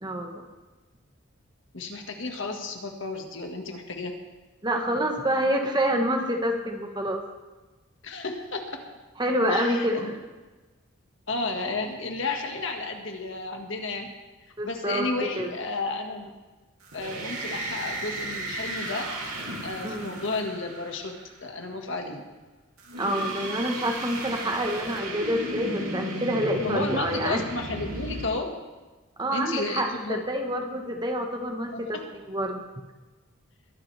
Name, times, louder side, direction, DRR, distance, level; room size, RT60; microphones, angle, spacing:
voice 1, 0.0-0.5 4.6-7.3 9.2-10.2 14.6-15.5 19.8-20.1 23.0-27.4 29.2-32.0 32.3-32.6, equal, 20° right, 3 dB, 1.2 m, -27 dB
voice 2, 1.7-4.2 8.0-8.8 9.5-10.1 11.3-14.1 14.6-16.3 16.9-19.1 19.6-21.2 21.4-22.2 26.6-28.5 29.3-30.2 31.7-32.0, left 3 dB, 60° left, 3 dB, 1.7 m, -32 dB
sound 1, 16.8-21.3 22.8-28.3, right 1 dB, 80° right, 2.8 m, -34 dB
22.0 x 11.5 x 3.4 m, 1.2 s
head